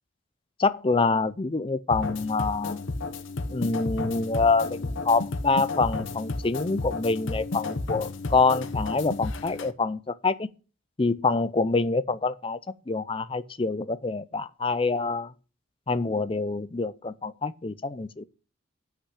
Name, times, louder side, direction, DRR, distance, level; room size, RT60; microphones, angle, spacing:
voice 1, 0.6-2.8 3.5-10.5 11.0-12.6 12.9-15.3 15.9-18.2, left 3 dB, 25° left, 0.5 m, -26 dB
sound 1, 1.9-9.7, left 3 dB, 60° left, 0.9 m, -32 dB
8.4 x 5.9 x 8.1 m
head